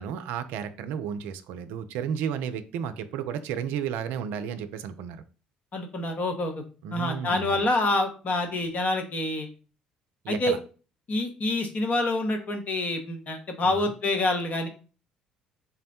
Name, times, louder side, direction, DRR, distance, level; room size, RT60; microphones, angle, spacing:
voice 1, 0.0-5.2 6.8-7.7 10.2-10.6 13.6-13.9, right 8 dB, 70° right, 10 dB, 0.4 m, -33 dB
voice 2, 5.7-6.6 6.9-9.5 10.3-10.5 11.1-14.7, left 2 dB, 45° left, 6 dB, 1.0 m, -27 dB
3.8 x 2.1 x 4.2 m, 0.36 s
hypercardioid pair, 55°, 4 cm